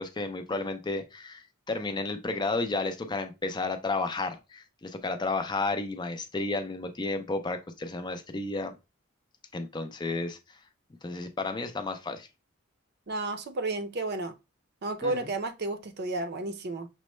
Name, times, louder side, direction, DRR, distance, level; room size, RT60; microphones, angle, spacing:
voice 1, 0.0-8.7 9.5-10.4 11.0-12.3 15.0-15.3, left 3 dB, 20° left, 0.4 m, -32 dB
voice 2, 13.1-14.3 14.8-16.9, right 2 dB, 50° right, 0.5 m, -32 dB
6.1 x 2.1 x 3.0 m
head